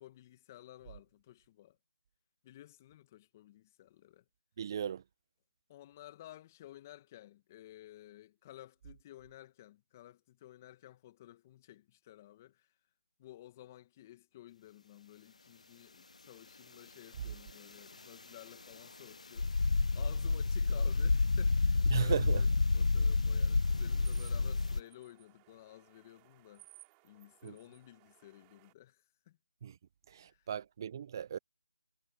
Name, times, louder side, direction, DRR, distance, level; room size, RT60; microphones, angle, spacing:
voice 1, 0.0-1.8 2.4-4.2 5.7-12.8 13.2-29.4 30.3-30.5, left 14 dB, 25° left, 1.5 m, -54 dB
voice 2, 4.6-5.0 21.9-22.4 27.4-27.5 29.6-29.8 30.1-31.4, right 8 dB, 35° right, 0.5 m, -36 dB
sound 1, 19.4-24.8, left 3 dB, 75° left, 0.5 m, -29 dB
sound 2, 23.6-28.7, right 39 dB, 15° right, 5.1 m, -61 dB
figure-of-eight pair, 160°, 4 cm